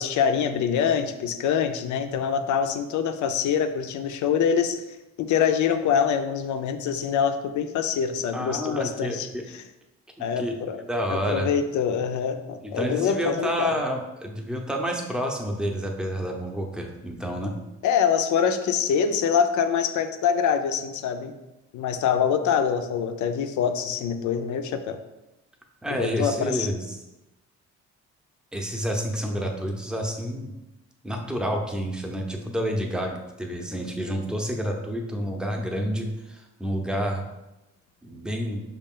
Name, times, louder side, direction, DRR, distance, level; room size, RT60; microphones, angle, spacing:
voice 1, 0.0-4.8 5.2-9.6 10.2-10.8 11.1-13.7 17.8-21.3 21.7-25.0 25.9-26.7, left 7 dB, 75° left, 8 dB, 0.5 m, -25 dB
voice 2, 8.3-9.4 10.4-10.6 10.9-11.5 12.6-17.5 25.8-27.0 28.5-30.5 31.0-37.2 38.0-38.6, equal, 5° right, 2 dB, 0.7 m, -29 dB
5.3 x 2.4 x 3.6 m, 0.98 s
cardioid pair, 90°, 30 cm